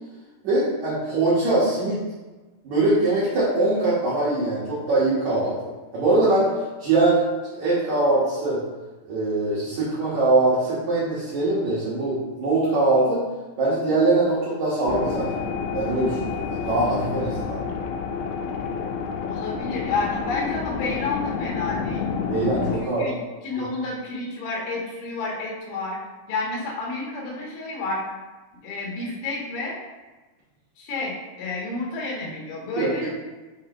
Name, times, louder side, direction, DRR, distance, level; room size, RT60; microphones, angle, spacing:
voice 1, 0.4-2.0 2.6-5.5 5.9-6.5 6.8-7.2 7.5-8.6 9.1-13.2 13.6-15.3 15.7-17.6 22.3-23.1 32.8-33.1, right 2 dB, 60° right, -9 dB, 2.1 m, -22 dB
sound 1, 14.9-22.8, left 6 dB, 85° left, 2.7 m, -29 dB
voice 2, 19.2-22.1 22.8-23.1 23.4-26.0 26.3-28.0 28.6-29.8 30.8-33.1, left 3 dB, 60° left, -3 dB, 2.5 m, -30 dB
7.9 x 4.8 x 3.0 m, 1.2 s
omnidirectional pair, 5.1 m